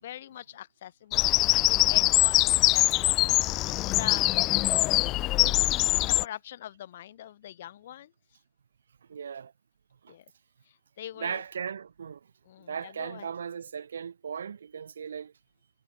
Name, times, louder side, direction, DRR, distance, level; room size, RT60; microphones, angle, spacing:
voice 1, 0.0-3.2 3.9-4.5 4.8-5.2 6.0-8.1 10.1-10.3 10.6-11.4 12.4-13.3, left 12 dB, 65° left, 4.7 m, -43 dB
Bird vocalization bird call bird song, 1.1-6.3, left 18 dB, 40° left, 0.4 m, -23 dB
voice 2, 9.0-9.5 10.0-10.2 11.2-12.3 12.6-15.3, right 7 dB, 80° right, 1.4 m, -37 dB
hypercardioid pair, 110°, 0 cm